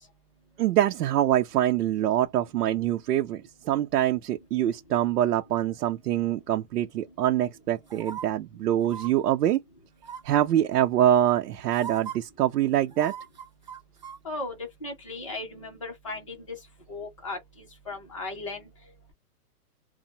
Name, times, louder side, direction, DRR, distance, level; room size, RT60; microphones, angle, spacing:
voice 1, 0.6-9.6 10.2-13.1, right 12 dB, 90° right, 0.6 m, -24 dB
sound 1, 7.9-8.2 8.8-9.1 10.0-10.4 11.3-11.4 11.7-12.2 12.9-14.2 14.5-14.6, right 8 dB, 30° right, 0.5 m, -38 dB
voice 2, 14.2-16.6 16.9-18.7, left 2 dB, 20° left, 0.5 m, -37 dB
2.6 x 2.0 x 2.8 m
hypercardioid pair, 175°, 45 cm